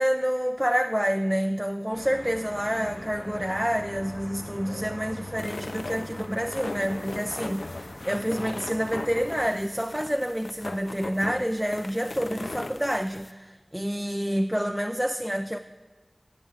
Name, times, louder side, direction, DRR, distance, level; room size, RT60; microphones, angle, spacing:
voice 1, 0.0-15.6, equal, 5° right, 7 dB, 0.5 m, -28 dB
sound 1, 1.9-9.6, left 1 dB, 40° left, 1.2 m, -41 dB
sound 2, 5.4-13.3, left 2 dB, 80° left, 0.6 m, -38 dB
14.0 x 6.1 x 9.1 m, 1.4 s
wide cardioid pair, 50°, 0 cm